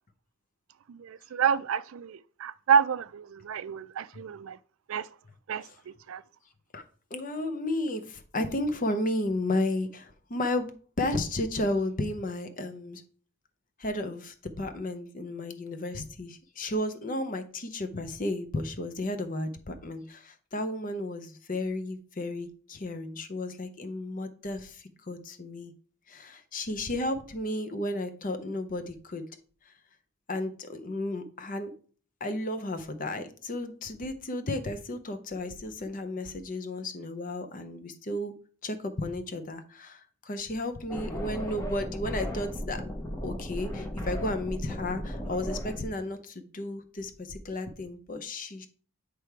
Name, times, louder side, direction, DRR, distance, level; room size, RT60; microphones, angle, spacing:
voice 1, 0.9-4.6 4.9-5.1 5.5-6.2, right 7 dB, 70° right, 0.4 m, -29 dB
voice 2, 7.1-13.0 13.8-25.7 26.1-29.2 29.7-29.8 30.3-31.7 32.2-38.3 38.6-42.8 43.2-48.7, left 1 dB, 40° left, 0.6 m, -33 dB
sound 1, 40.9-45.9, equal, 15° left, 0.9 m, -35 dB
8.3 x 3.4 x 4.6 m
head